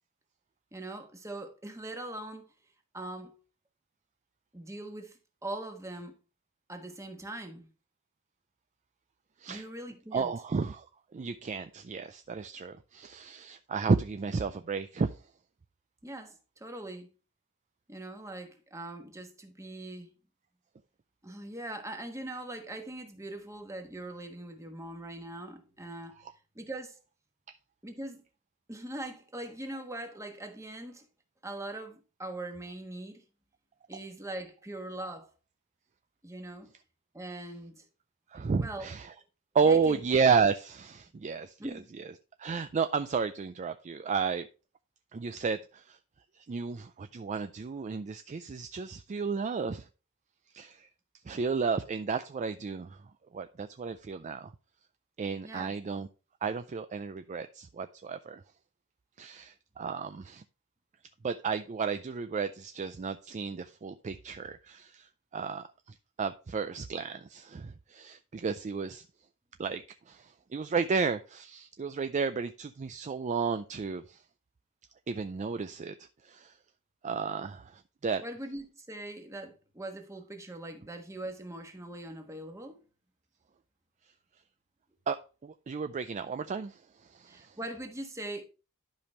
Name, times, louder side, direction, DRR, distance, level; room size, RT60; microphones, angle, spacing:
voice 1, 0.7-2.4 2.9-3.3 4.5-6.2 6.7-7.7 9.5-10.3 16.0-17.1 17.9-20.1 21.2-26.2 26.5-27.0 27.8-28.2 28.7-31.1 31.4-33.2 33.9-35.3 36.2-36.7 37.1-37.8 38.6-38.9 39.6-40.0 41.6-41.9 55.4-55.7 78.2-82.8 87.3-88.4, right 1 dB, 15° right, 1.3 m, -41 dB
voice 2, 10.1-10.9 11.1-15.2 38.3-39.1 39.5-42.0 42.4-44.5 45.1-46.0 46.3-49.9 50.5-50.9 51.3-53.0 53.3-54.5 55.2-56.1 56.4-58.4 59.2-60.4 61.2-69.1 69.6-74.2 75.1-76.0 76.2-76.6 77.0-78.2 85.1-87.6, right 5 dB, 35° right, 0.4 m, -32 dB
11.5 x 5.2 x 3.1 m
head